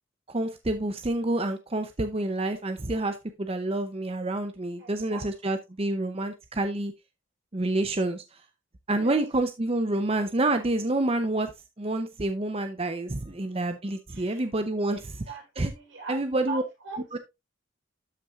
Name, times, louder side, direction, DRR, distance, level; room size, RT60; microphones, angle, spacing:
voice 1, 0.3-6.9 7.5-8.4 8.9-11.5 11.8-15.0 15.6-15.7 16.1-16.6 17.1-17.2, right 2 dB, 30° right, 0.6 m, -28 dB
voice 2, 4.8-5.6 9.0-9.2 14.1-14.5 14.9-16.2 16.5-17.0, right 4 dB, 75° right, 4.1 m, -40 dB
13.0 x 5.9 x 2.4 m
head